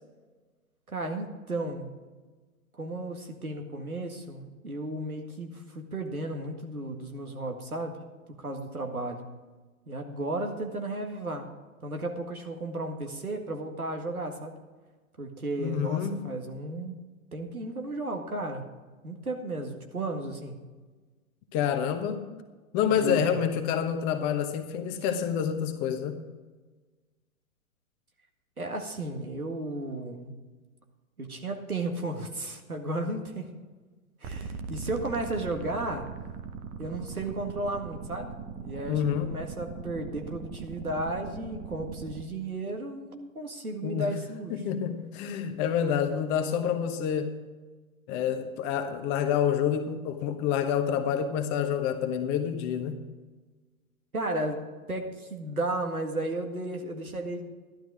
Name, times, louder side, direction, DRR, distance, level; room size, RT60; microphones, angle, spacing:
voice 1, 0.9-1.9 2.8-8.0 8.4-9.2 9.9-11.5 11.8-14.6 15.2-17.0 17.3-18.7 19.0-20.6 22.9-23.3 28.6-30.4 31.2-33.5 34.2-36.1 36.8-38.3 38.6-44.7 54.1-57.5, right 2 dB, 90° right, 2.0 m, -34 dB
voice 2, 15.6-16.2 21.5-22.3 22.7-26.2 38.9-39.3 43.8-44.1 44.5-47.4 48.1-53.0, left 8 dB, 25° left, 1.1 m, -28 dB
sound 1, 34.2-42.2, right 6 dB, 20° right, 0.7 m, -40 dB
13.0 x 12.0 x 4.9 m
figure-of-eight pair, 115°, 42 cm